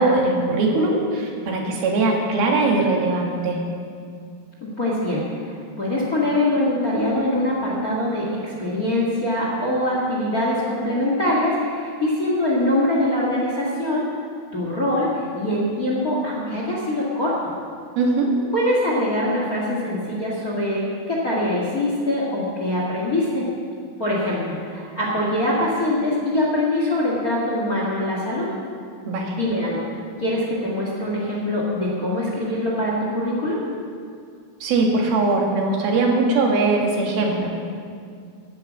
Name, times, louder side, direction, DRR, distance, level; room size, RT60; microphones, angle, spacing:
voice 1, 0.0-3.6 18.0-18.3 29.0-29.4 34.6-37.5, right 3 dB, 80° right, 0 dB, 3.7 m, -20 dB
voice 2, 4.6-14.0 14.5-17.5 18.5-23.4 24.0-28.5 29.3-29.8 30.2-33.6, left 1 dB, 35° left, -4 dB, 1.5 m, -23 dB
11.5 x 9.0 x 8.6 m, 2.2 s
omnidirectional pair, 4.2 m